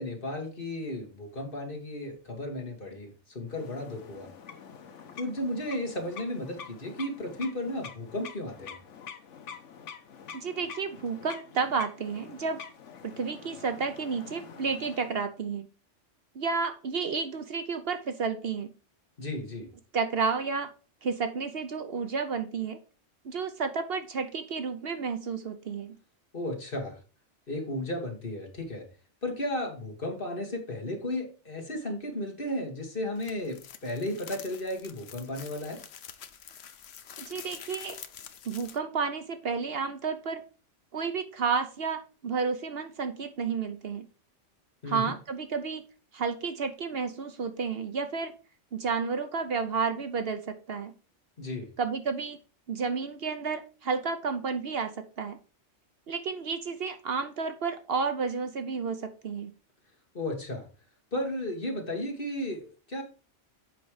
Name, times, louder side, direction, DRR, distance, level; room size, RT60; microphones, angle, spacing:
voice 1, 0.0-4.3 5.2-8.8 19.2-19.7 26.3-27.0 27.5-28.9 29.2-35.8 44.8-45.1 51.4-51.7 60.1-60.7 61.1-63.0, left 1 dB, 45° left, 2 dB, 2.0 m, -34 dB
sound 1, 3.5-15.3, left 6 dB, 85° left, 1.3 m, -46 dB
voice 2, 10.3-12.6 13.0-15.7 16.3-18.7 19.9-20.7 21.0-22.8 23.2-25.9 37.2-38.0 38.4-40.4 40.9-44.0 44.9-45.8 46.1-48.3 48.7-50.9 51.8-52.4 52.7-55.4 56.1-59.5, right 5 dB, 60° right, 8 dB, 1.0 m, -31 dB
sound 2, 33.2-38.8, left 8 dB, 65° left, 0.9 m, -47 dB
7.8 x 5.3 x 4.9 m, 0.35 s
omnidirectional pair, 1.2 m